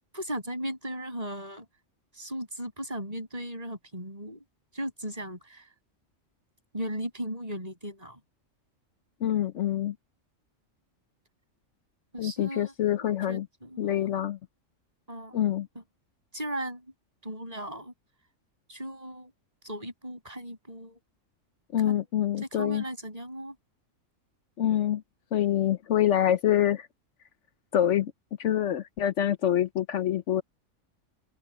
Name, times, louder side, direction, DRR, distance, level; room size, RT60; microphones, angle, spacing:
voice 1, 0.1-1.7 2.1-4.4 4.7-5.7 6.7-8.2 12.1-14.1 15.1-15.5 15.8-15.9 16.3-16.9 17.2-17.9 18.7-19.3 19.6-21.0 21.9-22.0 22.5-23.6, equal, 30° right, 6.7 m, -37 dB
voice 2, 9.2-9.9 12.2-13.5 13.8-14.4 15.3-15.7 21.7-22.8 24.6-25.0 25.3-26.9 27.7-28.1 28.4-30.4, left 11 dB, 70° left, 1.0 m, -26 dB
open air
omnidirectional pair, 1.3 m